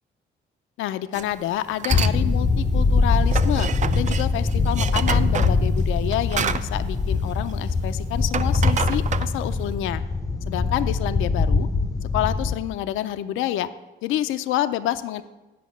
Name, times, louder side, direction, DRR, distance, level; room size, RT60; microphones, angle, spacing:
voice 1, 0.8-10.0 10.5-11.7 12.1-13.7 14.0-15.2, left 13 dB, 80° left, 12 dB, 0.4 m, -28 dB
sound 1, 1.1-1.3 1.7-2.2 2.5-7.8 8.1-9.7, right 7 dB, 40° right, 0.4 m, -29 dB
sound 2, 1.9-12.6, left 3 dB, 15° left, 0.5 m, -22 dB
8.4 x 5.4 x 7.0 m, 1.1 s
cardioid pair, 90°, 20 cm